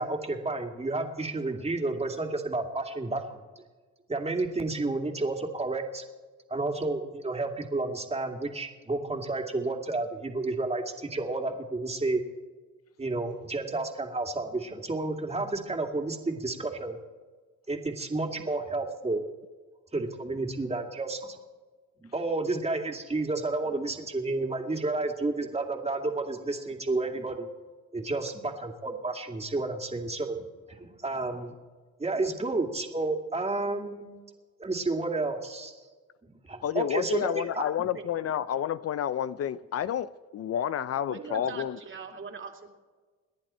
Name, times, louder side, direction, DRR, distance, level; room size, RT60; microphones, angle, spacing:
voice 1, 0.0-3.4 4.1-6.0 6.5-12.2 13.0-17.0 17.7-19.2 19.9-21.4 22.0-27.5 27.9-30.4 30.7-31.5 32.0-34.1 34.6-35.7 36.2-37.6, right 2 dB, 20° right, 3 dB, 2.4 m, -31 dB
voice 2, 36.6-41.8, left 10 dB, 55° left, 15 dB, 0.5 m, -30 dB
voice 3, 37.8-38.1 41.1-42.8, right 5 dB, 40° right, 3 dB, 2.7 m, -42 dB
28.5 x 10.5 x 4.4 m, 1.4 s
cardioid pair, 90°, 30 cm